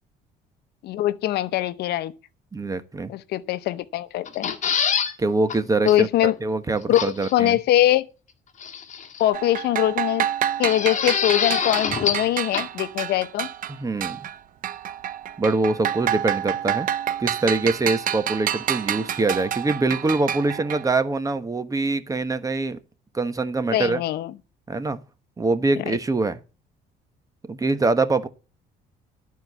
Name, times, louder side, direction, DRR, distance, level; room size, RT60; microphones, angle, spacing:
voice 1, 0.8-2.1 3.1-4.5 5.8-6.4 6.9-8.1 9.2-10.3 10.6-13.5 23.7-24.3 25.8-26.0, left 13 dB, 75° left, 0.8 m, -22 dB
voice 2, 2.5-3.1 5.2-7.6 13.8-14.2 15.4-16.9 17.2-22.8 23.1-24.0 24.7-25.0 25.4-26.4 27.5-28.3, right 3 dB, 20° right, 1.2 m, -24 dB
sound 1, 4.3-5.1 5.5-5.6 5.9-6.0 6.9-7.3 8.6-9.2 10.6-12.3 12.5-12.6, left 7 dB, 45° left, 1.7 m, -25 dB
sound 2, 9.3-14.4 14.6-20.9, right 10 dB, 55° right, 0.7 m, -28 dB
13.0 x 4.7 x 8.0 m
cardioid pair, 110°, 17 cm